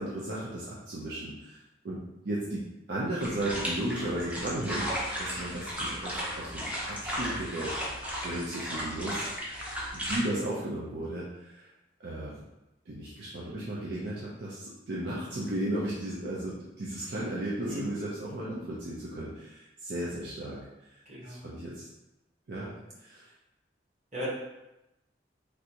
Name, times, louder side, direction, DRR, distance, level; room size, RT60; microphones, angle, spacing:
voice 1, 0.0-1.6 1.8-2.0 2.2-2.6 2.9-4.9 5.2-9.3 9.9-11.6 12.0-12.4 12.9-20.6 21.2-21.8 22.5-22.7 23.0-23.2, right 1 dB, 65° right, -6 dB, 0.5 m, -35 dB
sound 1, 3.2-10.2, equal, 10° right, 0.5 m, -35 dB
voice 2, 21.1-21.4 24.1-24.3, left 1 dB, 40° right, -8 dB, 1.3 m, -37 dB
3.3 x 2.5 x 2.8 m, 0.95 s
head